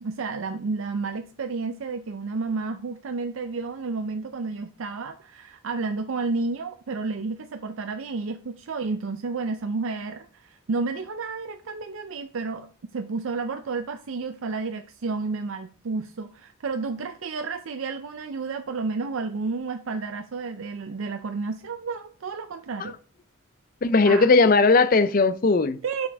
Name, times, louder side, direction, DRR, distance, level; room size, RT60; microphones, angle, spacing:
voice 1, 0.0-23.0 24.1-24.3 25.8-26.1, right 4 dB, 85° right, 0.5 m, -31 dB
voice 2, 23.8-25.8, left 3 dB, 45° left, 0.5 m, -18 dB
6.4 x 6.1 x 3.4 m
head